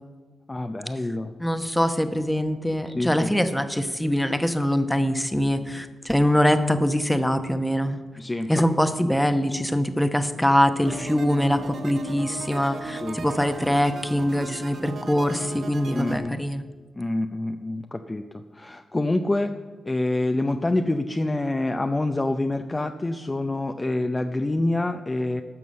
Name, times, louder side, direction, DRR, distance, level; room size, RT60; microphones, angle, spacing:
voice 1, 0.5-1.3 2.9-3.3 8.2-8.7 13.0-13.2 15.9-16.4 17.0-19.6 19.8-25.4, left 2 dB, 20° left, 6 dB, 0.6 m, -26 dB
voice 2, 1.4-8.0 8.5-16.6, equal, 5° left, 9 dB, 1.0 m, -23 dB
sound 1, 10.8-16.2, right 3 dB, 65° right, 1.6 m, -37 dB
12.5 x 6.1 x 7.5 m, 1.4 s
cardioid pair, 80°, 0 cm